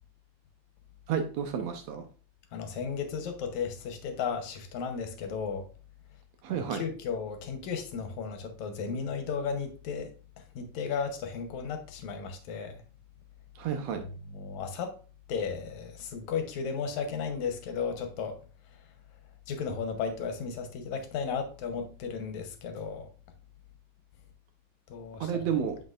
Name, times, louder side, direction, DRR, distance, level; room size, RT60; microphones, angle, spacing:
voice 1, 1.1-2.1 6.4-6.8 13.6-14.0 25.2-25.8, right 7 dB, 75° right, 1.8 m, -31 dB
voice 2, 2.5-5.7 6.5-12.8 14.0-15.0 15.3-18.4 18.7-18.8 19.5-23.1 24.9-25.5, left 6 dB, 75° left, 2.3 m, -35 dB
7.5 x 6.0 x 2.4 m
omnidirectional pair, 3.4 m